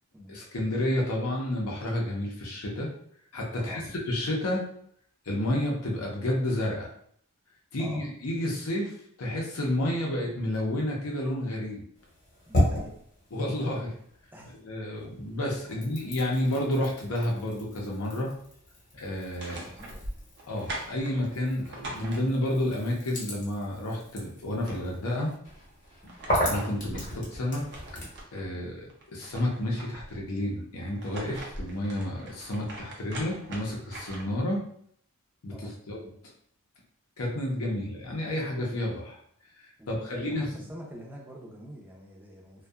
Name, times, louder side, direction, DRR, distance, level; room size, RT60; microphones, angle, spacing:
voice 1, 0.3-2.9 3.3-3.8 4.1-4.6 5.3-6.9 7.7-11.8 13.3-14.0 14.6-18.3 18.9-19.6 20.4-25.3 26.4-27.7 28.3-34.7 35.4-36.0 37.2-39.2 39.6-40.5, left 1 dB, 70° left, -1 dB, 0.6 m, -30 dB
voice 2, 3.6-3.9 7.8-8.0 12.5-12.9 14.3-14.5 15.7-15.8 19.4-20.0 35.5-35.7 39.8-42.7, equal, 10° right, -2 dB, 0.5 m, -45 dB
sound 1, 11.9-14.6 14.9-28.2, equal, 40° left, 0.9 m, -35 dB
sound 2, 19.2-22.7 24.1-24.2 24.5-25.3 25.8-28.5 28.9-30.2 30.8-34.4, right 1 dB, 50° right, 0.6 m, -42 dB
2.6 x 2.2 x 2.3 m, 0.64 s
head